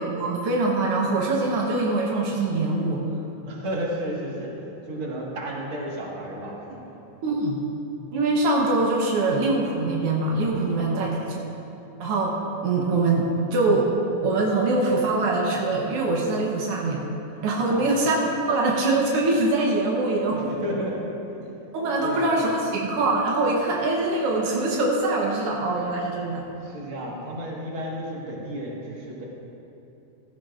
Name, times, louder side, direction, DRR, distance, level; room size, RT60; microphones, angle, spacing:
voice 1, 0.0-3.0 7.2-7.6 8.1-11.4 12.0-12.4 12.6-13.9 14.2-17.0 17.4-20.6 21.7-26.4, right 2 dB, 80° right, -2 dB, 1.3 m, -23 dB
voice 2, 3.4-4.5 4.9-7.0 10.7-11.1 11.4-11.5 17.7-18.0 20.3-21.5 22.0-22.3 26.6-29.3, equal, 45° right, -3 dB, 2.0 m, -33 dB
15.0 x 14.0 x 2.5 m, 2.9 s
omnidirectional pair, 4.1 m